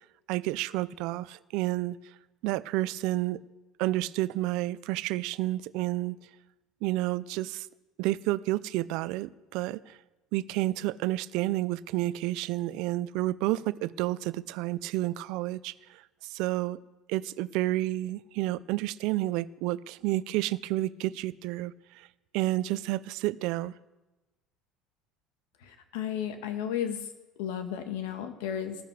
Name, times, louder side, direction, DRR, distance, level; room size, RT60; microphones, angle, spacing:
voice 1, 0.3-2.0 2.4-3.4 3.8-6.2 6.8-7.7 8.0-10.0 10.3-16.8 17.1-22.1 22.3-23.7, right 17 dB, 70° right, 18 dB, 0.5 m, -30 dB
voice 2, 25.6-27.1 27.4-28.8, left 9 dB, 90° left, 7 dB, 1.9 m, -33 dB
14.0 x 13.5 x 4.9 m, 1.1 s
cardioid pair, 130°, 0 cm